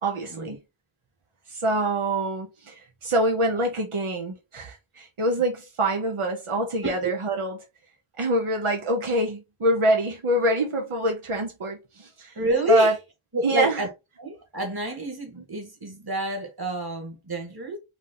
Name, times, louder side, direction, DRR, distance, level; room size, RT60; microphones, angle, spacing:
voice 1, 0.0-0.6 1.5-7.6 8.2-12.3 12.7-12.9 13.4-13.9, right 1 dB, 90° right, 1.0 m, -25 dB
voice 2, 6.8-7.1 12.4-13.0 13.3-13.9 14.2-17.8, equal, 50° right, 1.8 m, -28 dB
4.8 x 2.6 x 3.9 m
wide cardioid pair, 50°, 49 cm